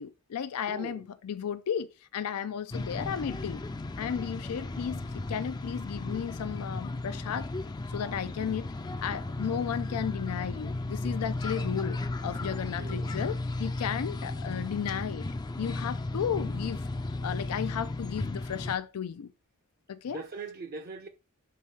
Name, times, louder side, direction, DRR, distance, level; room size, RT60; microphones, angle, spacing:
voice 1, 0.0-3.6 4.0-7.5 7.9-8.7 9.0-15.3 15.6-16.9 17.2-19.3 19.9-20.2, left 8 dB, 85° left, 0.4 m, -34 dB
voice 2, 0.7-1.1 12.4-13.2 20.0-21.1, right 4 dB, 40° right, 0.6 m, -42 dB
sound 1, 2.7-18.8, left 2 dB, 20° left, 0.4 m, -35 dB
5.7 x 3.7 x 4.7 m
head